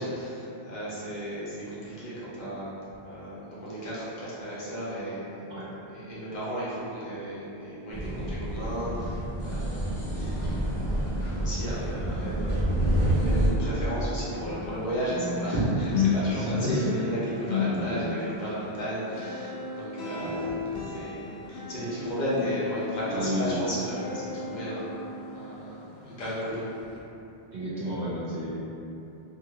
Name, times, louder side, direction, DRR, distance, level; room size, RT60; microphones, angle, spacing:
voice 1, 0.0-5.4 5.9-9.2 9.4-17.2 17.5-20.4 20.9-26.7, equal, 50° left, -9 dB, 0.7 m, -34 dB
sound 1, 7.9-13.5, right 1 dB, 30° right, 1.1 m, -28 dB
sound 2, 10.3-12.4 12.7-25.8 26.2-26.4 26.9-27.0, left 4 dB, 85° left, 0.8 m, -34 dB
voice 2, 16.2-17.0 17.6-18.1 20.1-20.5 23.1-23.5 27.5-28.7, equal, 55° right, -9 dB, 0.6 m, -32 dB
2.7 x 2.4 x 2.8 m, 2.8 s
omnidirectional pair, 1.0 m